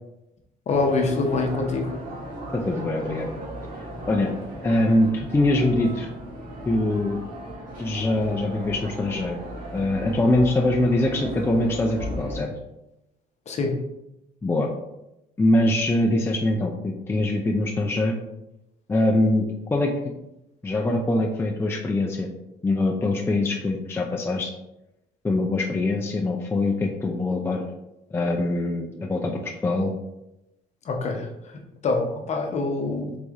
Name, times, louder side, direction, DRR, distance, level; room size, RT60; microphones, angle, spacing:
voice 1, 0.7-2.0 13.5-13.8 30.8-33.2, left 3 dB, 40° left, 3 dB, 0.8 m, -25 dB
sound 1, 0.7-12.4, right 1 dB, 55° right, 1.6 m, -36 dB
voice 2, 2.5-3.3 4.1-4.3 4.6-6.1 6.7-7.2 7.8-9.4 9.7-12.5 14.4-14.7 15.4-18.2 18.9-19.9 20.6-22.3 22.6-24.5 25.2-27.7 28.1-29.9, left 2 dB, 15° left, 0 dB, 0.5 m, -23 dB
4.1 x 3.2 x 3.6 m, 0.89 s
cardioid pair, 110°, 17 cm